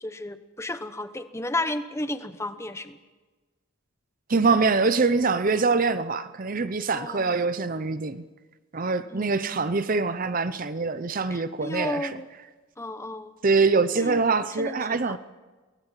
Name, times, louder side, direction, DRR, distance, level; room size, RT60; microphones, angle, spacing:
voice 1, 0.0-3.0 6.9-7.3 9.1-9.7 11.3-12.3 12.8-13.3 14.0-14.2 14.6-15.2, left 2 dB, 15° left, 0.9 m, -33 dB
voice 2, 4.3-8.2 8.7-12.1 13.4-15.2, right 4 dB, 40° right, 0.6 m, -24 dB
22.5 x 18.0 x 7.4 m
head